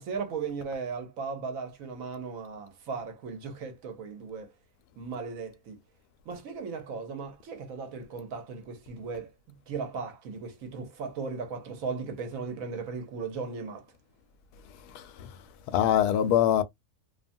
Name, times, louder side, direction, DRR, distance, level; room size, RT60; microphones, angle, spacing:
voice 1, 0.0-4.5 5.0-5.8 6.3-9.3 9.7-13.8, right 5 dB, 65° right, 1.1 m, -37 dB
voice 2, 14.9-15.3 15.7-16.6, left 10 dB, 90° left, 1.1 m, -24 dB
2.7 x 2.3 x 2.5 m
omnidirectional pair, 1.6 m